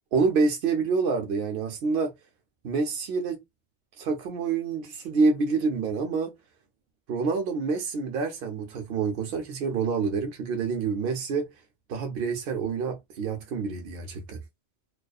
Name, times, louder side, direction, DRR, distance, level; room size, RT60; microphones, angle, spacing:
voice 1, 0.1-2.1 2.6-3.4 4.0-6.3 7.1-11.5 11.9-14.4, right 4 dB, 65° right, 0.7 m, -27 dB
2.3 x 2.3 x 2.3 m
omnidirectional pair, 1.2 m